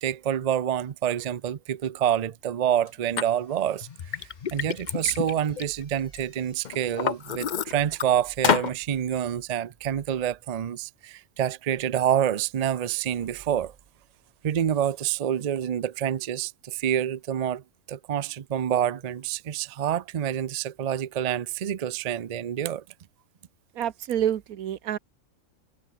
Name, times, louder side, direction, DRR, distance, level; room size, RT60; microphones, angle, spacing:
voice 1, 0.0-13.7 14.4-17.6 17.9-22.8, right 10 dB, 55° right, 0.4 m, -27 dB
sound 1, 2.8-9.0, left 2 dB, 85° left, 5.6 m, -63 dB
Liquid, 3.2-3.3 3.8-6.2 6.6-8.1 8.4-8.7, left 8 dB, 45° left, 0.6 m, -28 dB
voice 2, 23.7-25.0, right 10 dB, 85° right, 1.4 m, -28 dB
omnidirectional pair, 1.5 m